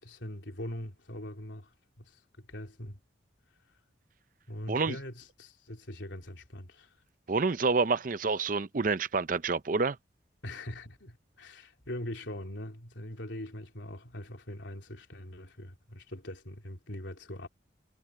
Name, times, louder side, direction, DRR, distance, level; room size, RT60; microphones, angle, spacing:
voice 1, 0.0-3.0 4.5-6.9 10.4-17.5, left 1 dB, 70° left, 3.5 m, -42 dB
voice 2, 7.3-10.0, right 4 dB, 45° right, 0.6 m, -28 dB
head